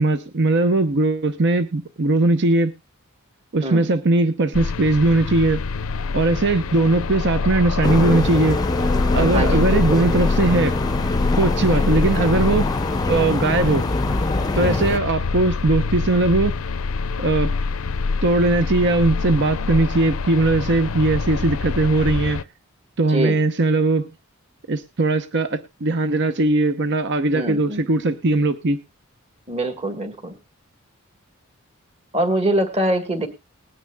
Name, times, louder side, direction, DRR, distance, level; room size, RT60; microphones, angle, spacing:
voice 1, 0.0-2.7 3.5-5.7 6.1-8.6 9.1-10.8 11.4-12.7 13.1-13.9 14.5-16.5 17.2-17.5 18.2-22.4 23.0-24.1 24.7-28.8, right 2 dB, 60° right, 10 dB, 0.8 m, -19 dB
sound 1, 4.5-22.4, left 4 dB, 80° left, 0.6 m, -25 dB
sound 2, 7.8-15.0, left 2 dB, 20° left, 0.6 m, -24 dB
voice 2, 9.3-10.0 14.6-14.8 23.1-23.4 27.3-27.8 29.5-30.4 32.1-33.3, right 1 dB, 30° right, 4 dB, 1.9 m, -24 dB
20.5 x 9.9 x 2.3 m, 0.26 s
head